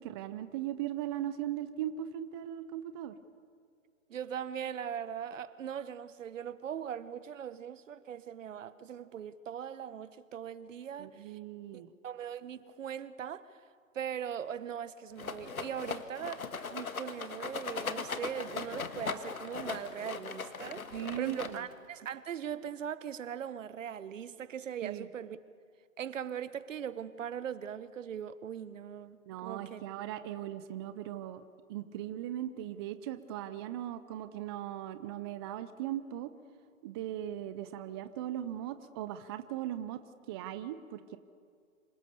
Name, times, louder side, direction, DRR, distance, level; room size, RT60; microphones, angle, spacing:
voice 1, 0.0-3.1 11.0-11.9 20.9-21.6 24.8-25.1 29.3-31.4 31.7-36.3 36.8-40.0 40.3-41.2, right 12 dB, 20° right, 0.5 m, -38 dB
voice 2, 4.1-11.4 11.7-13.6 13.9-25.4 26.0-29.8, right 9 dB, 65° right, 1.2 m, -40 dB
Rattle, 15.2-21.9, left 5 dB, 90° left, 1.6 m, -39 dB
26.5 x 18.0 x 6.8 m
hypercardioid pair, 130°, 41 cm